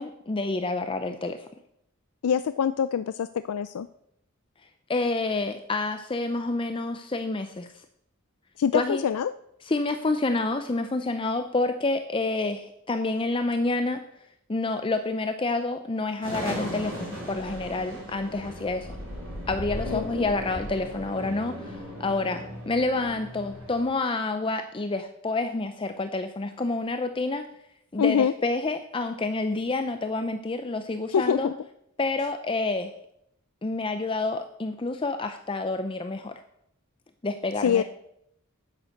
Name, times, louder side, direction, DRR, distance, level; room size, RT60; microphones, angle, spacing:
voice 1, 0.0-1.5 4.9-7.8 8.7-9.0 9.6-14.0 14.5-18.9 19.5-27.5 27.9-31.5 32.0-32.9 33.6-36.4 37.2-37.8, left 3 dB, 25° left, 8 dB, 0.5 m, -28 dB
voice 2, 2.2-3.9 8.6-9.3 19.9-20.2 28.0-28.3 31.1-31.5 37.6-37.8, left 7 dB, 85° left, 12 dB, 0.4 m, -25 dB
sound 1, 16.2-23.8, equal, 60° right, 4.8 m, -37 dB
9.6 x 9.0 x 6.5 m, 0.77 s
head